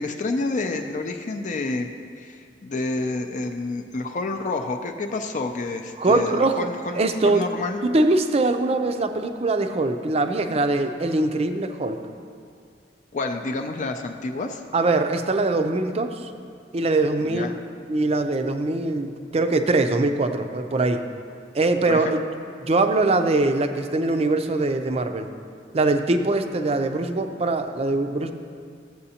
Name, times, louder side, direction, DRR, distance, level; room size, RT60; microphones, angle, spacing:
voice 1, 0.0-1.9 2.2-7.8 13.1-14.6 17.2-17.5 21.9-22.1, left 3 dB, 45° left, 4 dB, 0.4 m, -29 dB
voice 2, 6.0-6.7 6.9-7.4 7.8-12.0 14.7-16.3 16.7-17.6 17.9-21.0 21.5-22.2 22.7-25.3 25.7-28.3, right 2 dB, 35° right, 7 dB, 0.5 m, -22 dB
14.0 x 7.7 x 2.8 m, 2.3 s
head